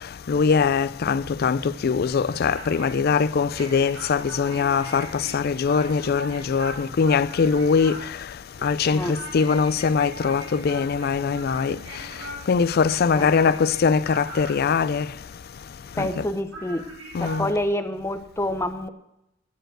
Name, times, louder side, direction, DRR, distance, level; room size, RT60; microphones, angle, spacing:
voice 1, 0.3-8.0 8.6-11.8 12.5-15.1 16.0-16.2 17.1-17.5, left 5 dB, 55° left, 0.4 m, -22 dB
sound 1, 2.3-16.3 16.5-17.4, right 1 dB, 70° right, 3.7 m, -41 dB
voice 2, 13.2-13.5 16.0-16.8 17.2-18.9, left 1 dB, 15° left, 0.8 m, -27 dB
10.5 x 6.9 x 7.8 m
head